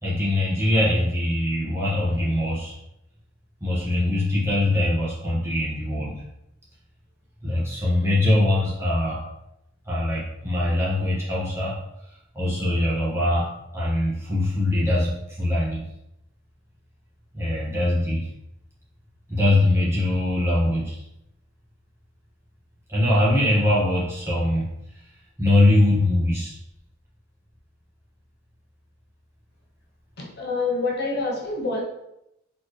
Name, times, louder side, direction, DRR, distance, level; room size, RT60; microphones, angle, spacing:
voice 1, 0.0-2.8 3.6-6.1 7.4-9.2 9.8-11.8 12.3-15.1 15.4-15.8 17.3-18.3 19.3-20.9 22.9-24.7 25.4-26.6, left 1 dB, 15° right, -8 dB, 1.7 m, -22 dB
voice 2, 30.2-31.8, left 3 dB, 55° left, -3 dB, 1.1 m, -26 dB
4.2 x 3.8 x 3.3 m, 0.84 s
head